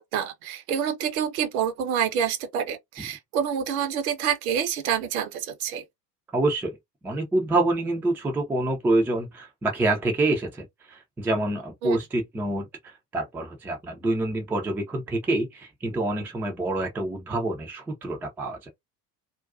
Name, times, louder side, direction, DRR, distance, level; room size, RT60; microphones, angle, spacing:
voice 1, 0.0-5.8 11.8-12.0, right 8 dB, 60° right, 0.8 m, -27 dB
voice 2, 6.3-6.8 7.0-18.7, right 2 dB, 5° right, 0.4 m, -27 dB
2.4 x 2.2 x 2.4 m
figure-of-eight pair, 65°, 50 cm